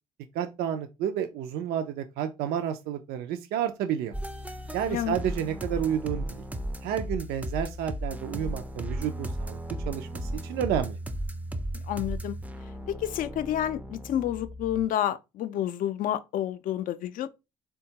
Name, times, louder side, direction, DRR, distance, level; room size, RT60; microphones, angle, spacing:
voice 1, 0.3-4.1 4.7-6.4 6.8-9.6 9.9-11.0, right 9 dB, 70° right, 0.4 m, -30 dB
sound 1, 4.1-14.9, right 1 dB, 10° right, 0.4 m, -35 dB
voice 2, 11.7-12.4 12.9-17.3, left 11 dB, 55° left, 0.4 m, -29 dB
3.6 x 2.2 x 2.8 m
supercardioid pair, 70°, 17 cm